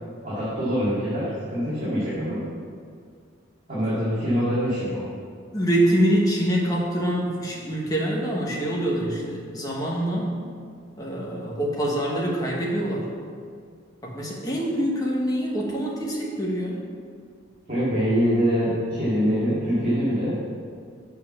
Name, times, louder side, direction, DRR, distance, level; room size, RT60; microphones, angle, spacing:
voice 1, 0.2-2.4 3.7-5.1 17.7-20.4, equal, 40° right, -11 dB, 2.3 m, -24 dB
voice 2, 5.5-10.4 11.0-13.1 14.0-16.8, right 1 dB, 20° left, -3 dB, 1.2 m, -25 dB
7.4 x 4.7 x 7.1 m, 2.1 s
head